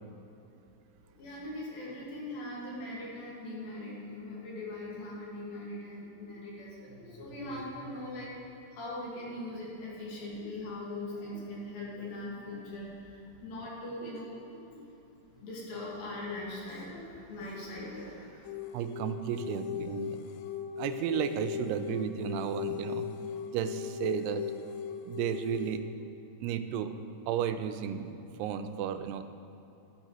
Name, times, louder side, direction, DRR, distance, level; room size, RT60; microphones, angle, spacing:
voice 1, 1.2-8.4 8.7-14.8 15.4-18.5, left 1 dB, 65° left, -5 dB, 3.5 m, -41 dB
sound 1, 18.4-25.8, left 8 dB, 85° left, 2.4 m, -38 dB
voice 2, 18.7-20.2 20.8-23.1 23.5-24.4 25.1-25.8 26.4-26.9 27.3-29.2, right 9 dB, 90° right, 9 dB, 2.6 m, -33 dB
12.0 x 11.5 x 3.0 m, 2.9 s
omnidirectional pair, 4.7 m